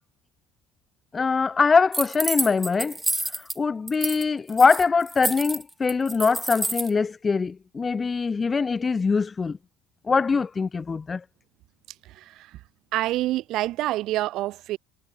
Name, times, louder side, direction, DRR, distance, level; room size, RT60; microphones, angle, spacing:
voice 1, 1.1-3.0 3.3-9.6 10.1-11.2, left 5 dB, 15° left, 0.7 m, -23 dB
sound 1, 1.9-3.6 3.9-4.2 4.5-6.9, right 1 dB, 5° right, 1.2 m, -29 dB
voice 2, 12.0-12.6 12.9-14.8, right 16 dB, 50° right, 2.3 m, -27 dB
cardioid pair, 165°, 0 cm